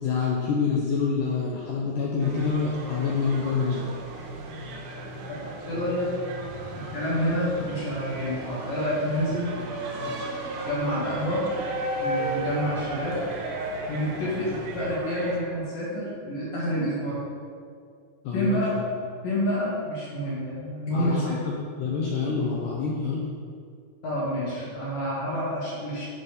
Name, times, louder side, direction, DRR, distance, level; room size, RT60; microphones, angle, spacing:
voice 1, 0.0-3.8 18.2-18.6 20.9-23.2, left 5 dB, 90° left, -3 dB, 1.9 m, -27 dB
sound 1, 2.2-15.4, right 1 dB, 75° right, 2.0 m, -35 dB
voice 2, 5.3-6.1 6.9-9.5 10.0-10.1 10.7-11.5 12.0-13.2 13.9-17.2 18.3-18.8 19.2-21.4 24.0-26.1, equal, 60° left, -9 dB, 3.2 m, -28 dB
10.5 x 4.2 x 5.1 m, 2.2 s
omnidirectional pair, 4.6 m